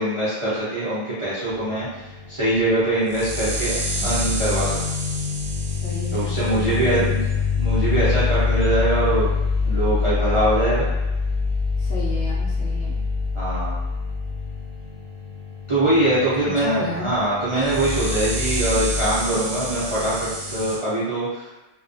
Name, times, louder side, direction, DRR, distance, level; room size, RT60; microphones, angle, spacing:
voice 1, 0.0-4.8 6.1-7.2 7.6-9.3 9.6-10.9 13.3-13.8 15.7-21.5, right 1 dB, 35° right, -12 dB, 0.5 m, -23 dB
sound 1, 1.5-20.8, left 4 dB, 80° right, 1.1 m, -25 dB
voice 2, 5.7-7.2 11.8-13.0 16.4-17.1, left 1 dB, 65° left, -5 dB, 0.8 m, -32 dB
2.3 x 2.1 x 2.6 m, 1.0 s
omnidirectional pair, 1.3 m